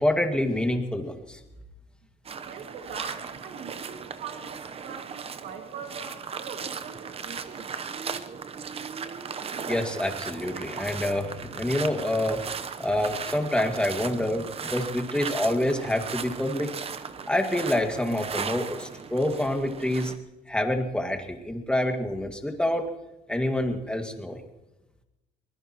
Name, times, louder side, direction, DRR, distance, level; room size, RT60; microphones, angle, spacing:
voice 1, 0.0-1.4 9.7-12.4 12.8-16.7 17.3-20.1 20.5-22.9 23.3-24.4, left 1 dB, 5° left, 4 dB, 2.0 m, -27 dB
sound 1, 2.2-20.2, right 6 dB, 35° right, 0.8 m, -37 dB
voice 2, 2.4-8.0, right 6 dB, 70° right, 4 dB, 2.1 m, -42 dB
24.0 x 20.0 x 3.0 m, 1.0 s
cardioid pair, 110°, 17 cm